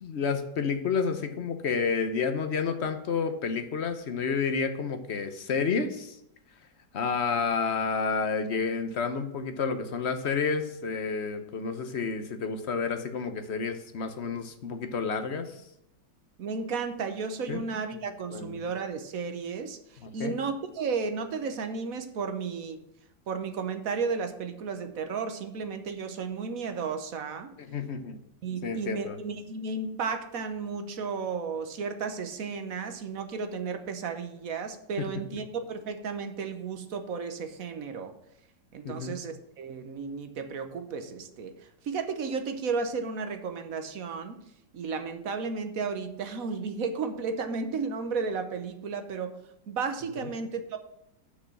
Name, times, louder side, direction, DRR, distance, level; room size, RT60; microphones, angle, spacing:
voice 1, 0.0-6.2 6.9-15.6 17.5-17.6 18.3-18.7 20.0-20.4 27.6-28.2 28.6-29.2 35.0-35.1 38.8-39.1 50.2-50.3, left 5 dB, 50° left, 8 dB, 0.9 m, -30 dB
voice 2, 16.4-22.8 23.3-27.5 28.4-38.1 38.7-44.4 44.7-49.4 49.7-50.8, right 5 dB, 55° right, 8 dB, 1.2 m, -33 dB
6.2 x 6.1 x 7.2 m, 0.82 s
omnidirectional pair, 2.0 m